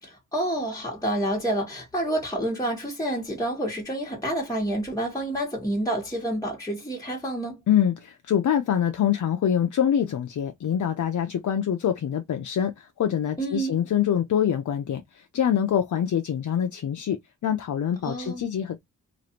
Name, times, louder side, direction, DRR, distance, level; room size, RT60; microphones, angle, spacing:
voice 1, 0.0-7.6 13.4-13.8 18.0-18.5, right 1 dB, 10° left, 1.2 m, -28 dB
voice 2, 7.7-18.8, left 9 dB, 65° left, 0.5 m, -25 dB
3.1 x 2.4 x 2.7 m
wide cardioid pair, 80°, 33 cm